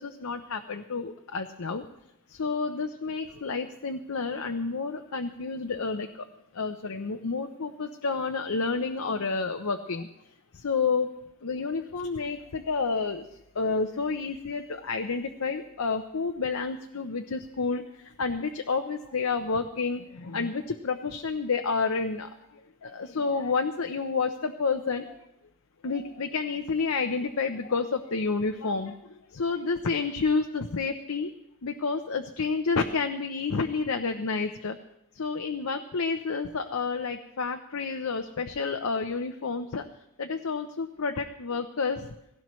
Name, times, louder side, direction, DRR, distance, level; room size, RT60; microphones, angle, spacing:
voice 1, 0.0-1.8 2.3-6.3 6.5-10.1 10.5-11.1 11.4-13.2 13.6-22.3 22.8-25.2 25.8-29.0 29.3-31.3 31.6-34.8 35.2-39.9 40.2-42.1, left 4 dB, 80° left, 5 dB, 0.7 m, -30 dB
17.0 x 16.5 x 3.2 m, 0.84 s
head